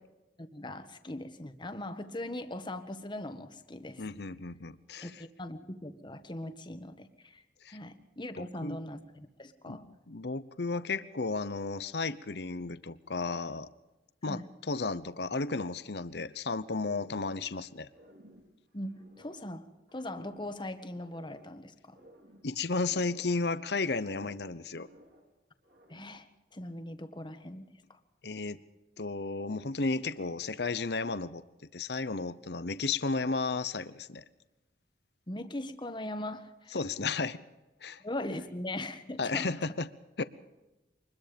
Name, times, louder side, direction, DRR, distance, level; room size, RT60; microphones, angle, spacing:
voice 1, 0.4-4.0 5.0-7.4 7.7-9.8 14.3-14.4 18.7-19.7 19.9-22.0 25.9-28.0 35.3-36.8 38.0-39.5, left 1 dB, 25° left, 9 dB, 1.5 m, -40 dB
voice 2, 4.0-5.1 7.6-7.8 8.4-8.8 9.7-9.8 10.1-13.7 14.2-14.4 14.7-17.9 22.4-24.9 28.2-28.6 29.0-31.4 31.7-34.2 36.7-37.4 37.8-38.0 39.2-39.9 40.2-40.3, left 3 dB, 65° left, 14 dB, 0.9 m, -33 dB
sound 1, 16.9-17.6 17.9-19.5 19.9-21.5 21.9-23.5 23.7-25.3 25.6-26.3, equal, 65° right, 4.4 m, -57 dB
24.5 x 21.0 x 5.3 m, 1.1 s
head